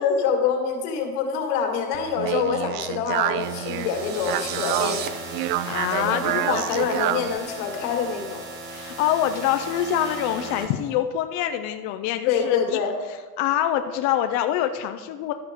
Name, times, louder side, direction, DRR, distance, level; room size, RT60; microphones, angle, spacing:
voice 1, 0.0-5.0 5.9-8.4 12.3-12.9, left 6 dB, 75° left, 2 dB, 2.2 m, -25 dB
Speech, 1.9-7.4, right 14 dB, 90° right, 0.6 m, -28 dB
sound 1, 3.2-5.1, right 9 dB, 25° right, 0.4 m, -36 dB
sound 2, 3.4-10.9, right 2 dB, 50° right, 1.5 m, -37 dB
voice 2, 5.6-6.6 8.7-12.8 13.4-15.3, left 11 dB, 40° left, 7 dB, 0.4 m, -25 dB
12.0 x 5.8 x 4.9 m, 1.4 s
supercardioid pair, 150°, 45 cm